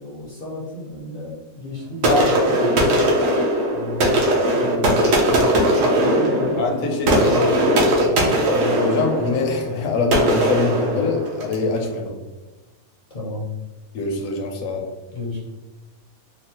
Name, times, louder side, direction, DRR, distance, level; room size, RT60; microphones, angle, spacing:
voice 1, 0.0-3.1 3.7-8.3 13.1-13.5 15.1-15.4, left 3 dB, 50° left, -5 dB, 0.6 m, -33 dB
sound 1, 2.0-11.7, right 1 dB, 65° right, 1.0 m, -19 dB
voice 2, 6.6-7.5 8.3-12.1 13.9-14.8, left 3 dB, 70° left, 3 dB, 0.9 m, -24 dB
4.0 x 2.0 x 2.8 m, 1.1 s
omnidirectional pair, 1.5 m